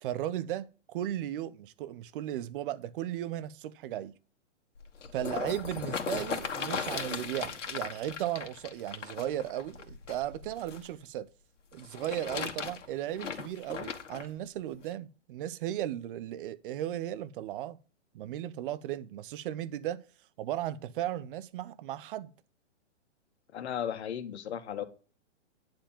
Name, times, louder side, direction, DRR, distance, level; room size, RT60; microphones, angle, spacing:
voice 1, 0.0-4.1 5.1-11.3 11.7-17.8 18.1-20.0 20.4-22.3, right 12 dB, 45° right, 0.9 m, -36 dB
sound 1, 4.8-10.9 11.7-14.3 14.9-15.0, left 6 dB, 85° left, 2.0 m, -37 dB
voice 2, 23.5-24.8, left 9 dB, 65° left, 1.8 m, -35 dB
10.5 x 4.9 x 7.2 m
hypercardioid pair, 130°, 36 cm